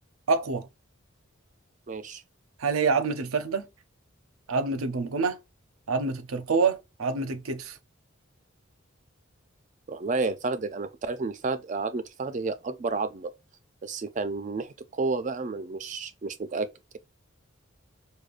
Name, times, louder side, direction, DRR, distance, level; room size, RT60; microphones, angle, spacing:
voice 1, 0.3-0.7 2.6-3.7 4.5-5.4 5.9-7.8, right 4 dB, 85° right, 0.6 m, -26 dB
voice 2, 1.9-2.2 9.9-13.3 13.8-16.7, right 3 dB, 35° right, 0.4 m, -31 dB
4.9 x 2.3 x 2.4 m
head